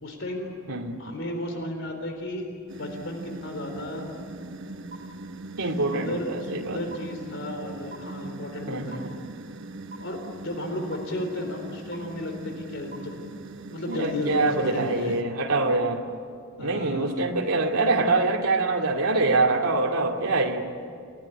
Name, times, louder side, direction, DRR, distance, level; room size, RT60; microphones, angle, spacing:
voice 1, 0.0-0.5 1.0-4.1 5.6-9.0 10.0-13.2 13.7-15.1 16.6-17.2, left 1 dB, 60° left, 4 dB, 3.9 m, -34 dB
sound 1, 2.7-15.2, right 2 dB, 55° right, 1.1 m, -41 dB
sound 2, 4.9-5.0 5.9-6.0 6.9-7.0 7.9-8.0 8.9-9.0 9.9-10.0 10.9-11.0 11.9-12.0 12.9-13.0 13.9-14.0, right 2 dB, 40° right, 4.7 m, -40 dB
voice 2, 5.6-6.8 8.7-9.2 13.9-16.1 16.6-20.6, right 3 dB, 85° right, -1 dB, 2.4 m, -25 dB
29.0 x 18.0 x 9.9 m, 2.4 s
head